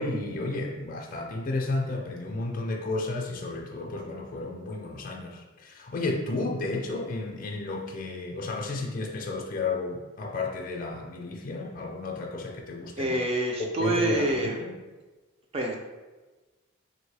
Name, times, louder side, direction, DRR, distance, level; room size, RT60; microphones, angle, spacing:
voice 1, 0.0-13.1 13.6-14.7, left 2 dB, 40° left, 0 dB, 0.4 m, -32 dB
voice 2, 13.0-14.6 15.5-15.7, right 1 dB, 30° right, 1 dB, 0.3 m, -26 dB
3.8 x 2.7 x 3.2 m, 1.2 s
head